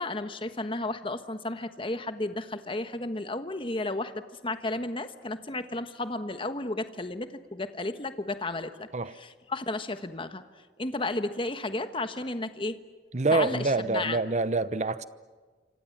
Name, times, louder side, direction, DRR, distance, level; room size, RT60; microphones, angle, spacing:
voice 1, 0.0-8.9 9.1-10.4 10.8-12.8 13.3-14.2, left 2 dB, 30° left, 1.3 m, -33 dB
voice 2, 13.1-15.0, right 3 dB, 40° right, 0.9 m, -26 dB
28.5 x 26.0 x 7.4 m
head